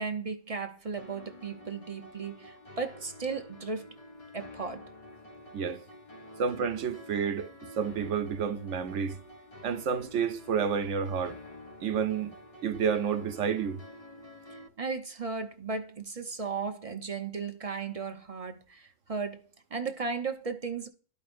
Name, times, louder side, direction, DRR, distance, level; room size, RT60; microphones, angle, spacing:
voice 1, 0.0-3.9 4.3-4.8 14.8-19.4 19.7-20.9, right 4 dB, 35° right, 0.7 m, -35 dB
sound 1, 1.0-14.7, left 1 dB, 30° left, 0.9 m, -49 dB
voice 2, 5.5-5.8 6.4-7.5 7.8-9.2 9.6-11.4 11.8-12.3 12.6-13.8, right 6 dB, 75° right, 1.1 m, -30 dB
13.0 x 5.1 x 2.5 m
omnidirectional pair, 1.3 m